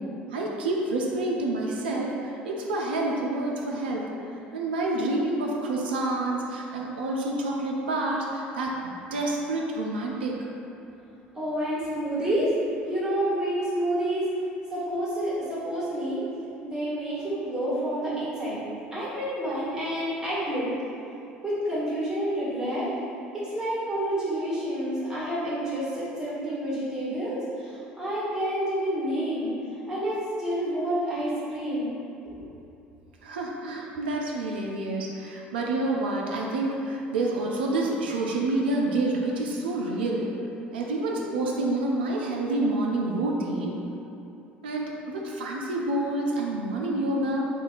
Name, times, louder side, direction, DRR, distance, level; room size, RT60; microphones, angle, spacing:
voice 1, 0.3-4.1 4.5-10.4 33.2-40.3 40.7-43.8 44.6-47.5, right 2 dB, 75° right, -2 dB, 0.4 m, -28 dB
voice 2, 11.3-12.5 12.8-14.3 14.7-16.2 16.6-18.6 18.9-20.7 21.4-22.9 23.5-29.5 29.9-32.0 32.2-32.3, right 1 dB, 10° right, -11 dB, 1.4 m, -29 dB
2.7 x 2.4 x 3.7 m, 2.8 s
figure-of-eight pair, 60°, 5 cm